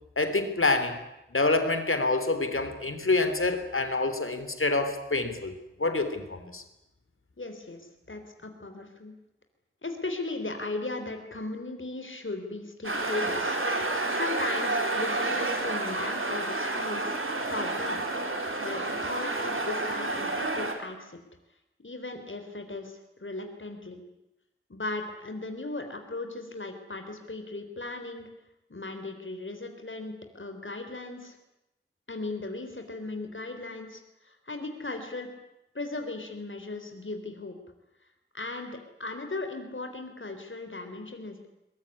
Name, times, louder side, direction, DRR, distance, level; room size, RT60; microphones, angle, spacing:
voice 1, 0.2-1.0 1.3-5.5 5.8-6.6, left 3 dB, 90° left, 9 dB, 3.4 m, -27 dB
voice 2, 7.4-9.1 9.8-13.6 14.1-17.1 17.5-18.1 18.6-21.2 21.8-24.0 24.7-28.3 28.7-31.4 32.1-35.3 35.7-37.6 38.3-41.5, left 2 dB, 70° left, 6 dB, 3.8 m, -37 dB
sound 1, 12.8-20.7, right 2 dB, 80° right, 4.2 m, -30 dB
23.0 x 22.0 x 9.8 m, 0.91 s
wide cardioid pair, 45°, 21 cm